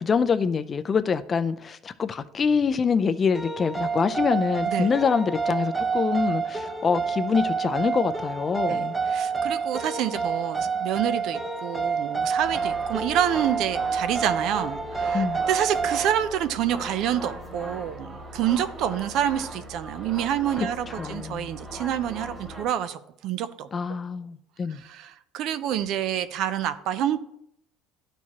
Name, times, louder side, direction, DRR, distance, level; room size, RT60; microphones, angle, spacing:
voice 1, 0.0-9.0 15.1-15.4 21.0-21.5 23.7-24.8, left 5 dB, 25° left, 0.4 m, -25 dB
sad piano piece, 3.3-16.2, right 5 dB, 5° right, 0.8 m, -28 dB
voice 2, 8.7-23.7 24.7-27.2, right 10 dB, 60° right, 0.5 m, -28 dB
sound 1, 12.4-22.6, right 1 dB, 20° right, 2.2 m, -39 dB
12.0 x 4.6 x 2.9 m
cardioid pair, 125°, 0 cm